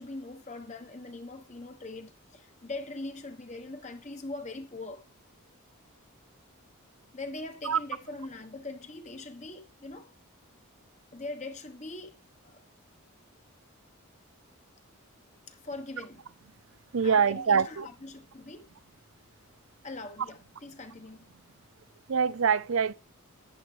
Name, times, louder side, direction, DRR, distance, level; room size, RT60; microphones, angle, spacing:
voice 1, 0.0-5.0 7.1-10.1 11.1-12.1 12.4-12.6 15.5-16.2 17.0-18.7 19.8-21.3, left 2 dB, 30° left, 1.2 m, -41 dB
voice 2, 16.9-17.9 22.1-22.9, right 6 dB, 60° right, 0.5 m, -24 dB
11.0 x 9.7 x 3.3 m
head